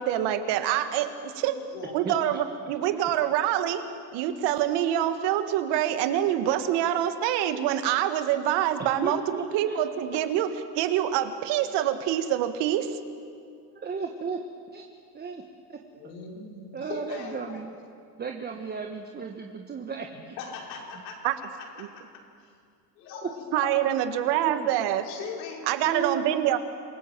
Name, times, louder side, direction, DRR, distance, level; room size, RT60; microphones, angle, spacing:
voice 1, 0.0-1.5 1.9-3.8 4.1-13.0 21.2-21.3 21.8-21.9 23.5-25.0 25.7-26.6, right 11 dB, 60° right, 9 dB, 1.9 m, -26 dB
voice 2, 1.4-2.0 16.0-17.9 20.4-21.1 22.4-22.5 23.0-23.7 25.0-25.6, left 5 dB, 80° left, -1 dB, 5.7 m, -40 dB
voice 3, 2.0-2.4 9.0-9.8 13.7-14.4 14.7-14.8 15.1-15.4 15.7-15.8 16.7-17.7 18.2-20.4 23.2-23.3 24.4-24.7 25.8-26.6, right 5 dB, 20° right, 3 dB, 1.4 m, -34 dB
27.0 x 18.5 x 7.6 m, 2.3 s
supercardioid pair, 120°, 48 cm